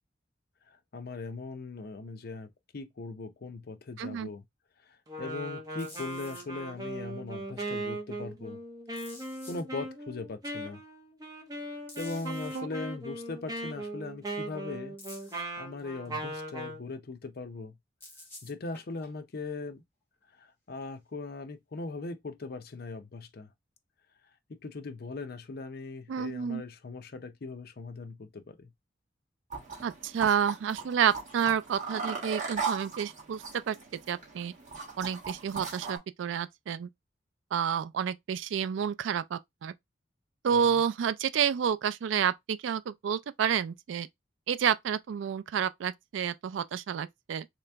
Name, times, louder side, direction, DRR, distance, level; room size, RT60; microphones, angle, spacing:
voice 1, 0.9-4.4 4.9-8.6 9.5-10.8 12.0-15.0 15.6-17.7 18.4-19.8 20.4-23.5 24.6-28.7 40.6-40.8, left 3 dB, 55° left, 0.6 m, -40 dB
voice 2, 4.0-4.3 12.5-12.7 26.1-26.6 29.8-33.8 34.1-34.5 35.0-36.9 37.5-39.7 40.4-44.1 44.5-47.5, right 8 dB, 85° right, 0.3 m, -29 dB
Wind instrument woodwind instrument, 5.1-16.8, right 1 dB, 20° right, 1.0 m, -39 dB
sound 1, 5.8-6.4 8.9-9.6 11.9-12.6 15.0-15.4 18.0-19.2 21.6-21.7, left 1 dB, 10° left, 1.2 m, -50 dB
sound 2, 29.5-36.0, right 5 dB, 40° right, 1.3 m, -38 dB
3.3 x 3.0 x 3.4 m
head